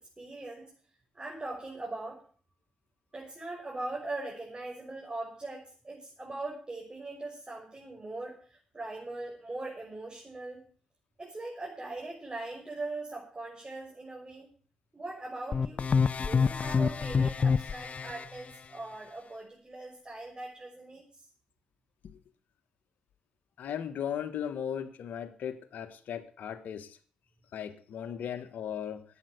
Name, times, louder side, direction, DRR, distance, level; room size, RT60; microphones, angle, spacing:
voice 1, 0.2-0.7 1.1-2.2 3.1-10.6 11.2-14.5 14.9-21.2 28.0-28.1, right 2 dB, 30° right, -2 dB, 6.0 m, -41 dB
sound 1, 15.5-18.2, left 5 dB, 50° left, 0.7 m, -27 dB
voice 2, 23.6-27.0 27.5-29.0, left 9 dB, 75° left, 10 dB, 1.4 m, -37 dB
11.5 x 9.1 x 8.1 m, 0.43 s
supercardioid pair, 50°, 3 cm